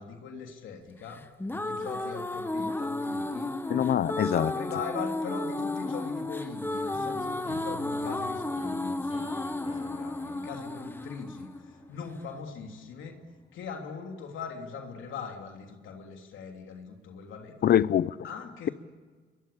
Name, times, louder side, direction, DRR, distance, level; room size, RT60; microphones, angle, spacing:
voice 1, 0.0-3.6 4.2-13.2 13.5-17.8 18.2-18.7, left 6 dB, 80° left, 3.2 m, -41 dB
sound 1, 1.2-12.2, left 2 dB, 10° left, 1.5 m, -33 dB
voice 2, 3.7-4.5 17.6-18.1, left 10 dB, 55° left, 0.7 m, -23 dB
sound 2, 6.9-12.9, left 3 dB, 30° left, 6.2 m, -47 dB
28.0 x 22.5 x 8.7 m
cardioid pair, 90°, 20 cm